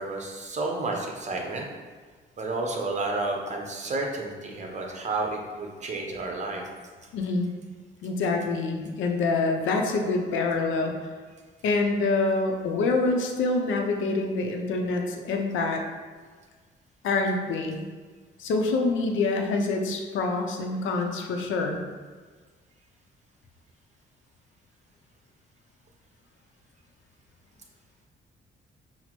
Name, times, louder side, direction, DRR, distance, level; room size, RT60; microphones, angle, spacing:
voice 1, 0.0-1.7 2.4-6.7, right 2 dB, 35° right, 1 dB, 0.8 m, -31 dB
voice 2, 7.1-7.5 8.0-10.9 11.6-15.8 17.0-17.8 18.4-21.8, left 3 dB, 75° left, 3 dB, 0.5 m, -26 dB
5.7 x 2.0 x 3.0 m, 1.5 s
cardioid pair, 90°, 20 cm